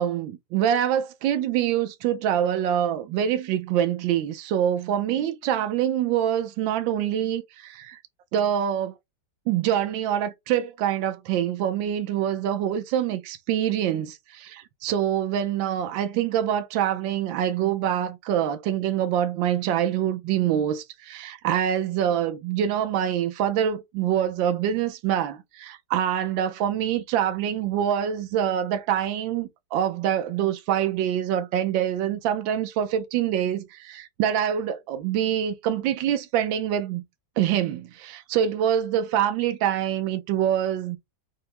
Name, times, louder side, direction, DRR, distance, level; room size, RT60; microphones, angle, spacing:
voice 1, 0.0-8.0 8.3-8.9 9.5-37.0 37.4-41.0, right 10 dB, 90° right, 1.4 m, -25 dB
5.8 x 2.1 x 3.2 m
omnidirectional pair, 2.0 m